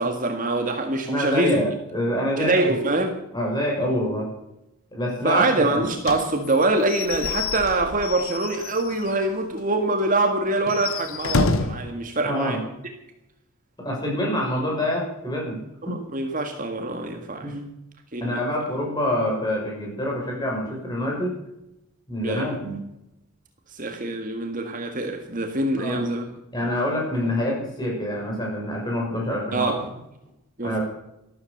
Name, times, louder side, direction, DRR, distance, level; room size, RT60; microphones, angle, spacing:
voice 1, 0.0-1.6 2.4-3.1 5.2-12.6 15.8-17.5 18.1-18.4 22.2-22.5 23.7-26.3 29.5-29.8 30.6-30.8, right 2 dB, 40° right, 4 dB, 1.8 m, -24 dB
voice 2, 1.1-2.8 3.3-4.3 4.9-5.8 12.2-12.6 13.8-15.6 15.9-16.0 17.4-17.6 18.2-21.3 22.1-22.8 25.8-26.0 26.5-29.8 30.6-30.8, left 1 dB, 20° left, -2 dB, 6.6 m, -26 dB
Slam / Squeak / Wood, 6.0-9.2 9.6-9.7 10.0-10.1 10.6-11.9, left 4 dB, 75° left, 1.2 m, -28 dB
13.5 x 13.0 x 6.7 m, 0.86 s
head